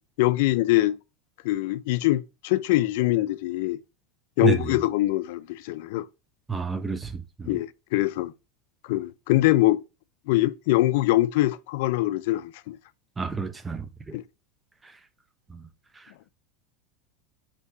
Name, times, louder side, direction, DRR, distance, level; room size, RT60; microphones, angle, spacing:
voice 1, 0.2-1.0 1.4-3.8 4.4-6.1 7.5-8.3 8.9-9.8 10.3-12.8 14.1-14.2, left 17 dB, 70° left, 0.3 m, -23 dB
voice 2, 4.4-4.7 6.5-7.6 13.2-14.2 15.5-15.6, right 6 dB, 10° right, 0.4 m, -29 dB
3.4 x 2.8 x 4.5 m
supercardioid pair, 140°, 0 cm